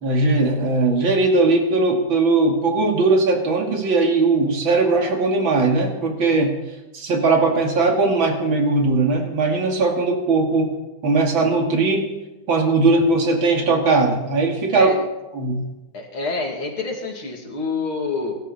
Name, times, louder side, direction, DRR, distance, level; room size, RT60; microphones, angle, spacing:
voice 1, 0.0-6.6 6.9-10.7 11.0-12.1 12.5-14.9 15.3-15.6, right 3 dB, 70° right, 2 dB, 3.3 m, -19 dB
voice 2, 15.9-18.4, left 3 dB, 85° left, 1 dB, 3.8 m, -27 dB
25.5 x 13.0 x 4.4 m, 1.0 s
omnidirectional pair, 2.2 m